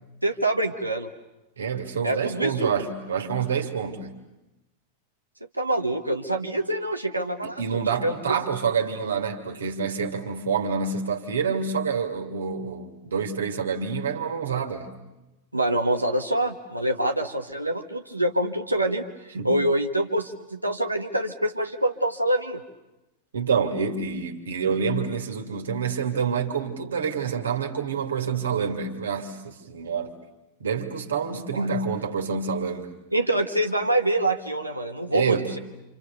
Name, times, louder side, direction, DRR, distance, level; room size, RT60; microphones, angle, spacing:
voice 1, 0.2-1.1 2.0-2.7 5.5-8.4 15.5-19.0 19.4-22.6 31.3-31.7 33.1-35.6, right 1 dB, 85° right, 4 dB, 1.5 m, -25 dB
voice 2, 1.6-4.1 7.4-14.9 19.3-19.5 23.3-30.1 30.6-32.9 35.1-35.6, right 6 dB, 70° right, 4 dB, 2.6 m, -27 dB
28.5 x 27.5 x 6.9 m, 1.0 s
figure-of-eight pair, 90°, 0 cm